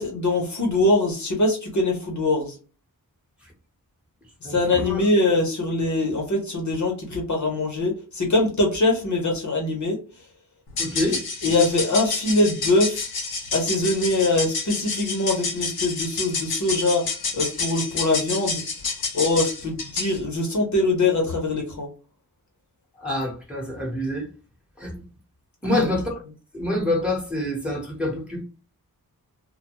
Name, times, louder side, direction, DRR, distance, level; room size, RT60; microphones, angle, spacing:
voice 1, 0.0-2.6 4.4-10.0 11.1-13.1 13.5-17.0 17.3-18.6 19.1-21.9 25.6-25.9, left 2 dB, 55° left, 0.9 m, -23 dB
sound 1, 10.7-20.2, left 4 dB, 90° left, 0.7 m, -29 dB
voice 2, 10.8-11.2 23.0-24.3 24.8-25.0 25.6-26.1 26.5-28.4, left 1 dB, 5° right, 1.0 m, -26 dB
2.2 x 2.2 x 2.9 m
wide cardioid pair, 90°, 36 cm